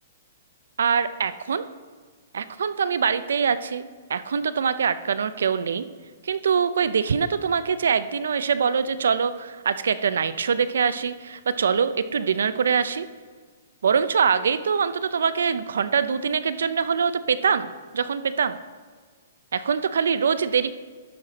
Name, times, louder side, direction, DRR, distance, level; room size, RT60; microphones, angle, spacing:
voice 1, 0.8-1.6 2.3-3.8 4.1-5.8 6.2-13.1 13.8-18.6 19.5-20.7, right 6 dB, 85° right, 13 dB, 0.5 m, -23 dB
11.5 x 5.8 x 4.0 m, 1.5 s
hypercardioid pair, 170°, 0 cm